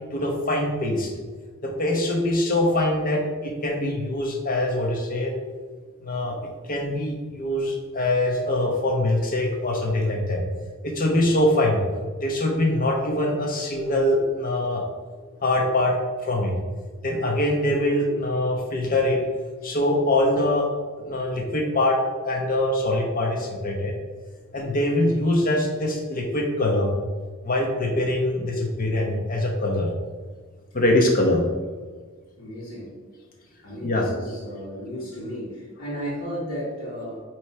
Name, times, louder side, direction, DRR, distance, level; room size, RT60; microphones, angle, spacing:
voice 1, 0.1-1.1 1.6-5.3 6.0-6.4 6.7-10.4 10.8-11.8 12.2-14.8 15.4-16.5 17.0-19.2 19.6-20.7 21.0-23.9 24.5-26.9 27.4-29.9 30.7-31.4 33.8-34.1, left 1 dB, 40° left, 1 dB, 1.1 m, -23 dB
voice 2, 32.4-32.9 33.6-37.2, equal, 75° left, -7 dB, 1.8 m, -34 dB
8.0 x 3.2 x 4.3 m, 1.5 s
head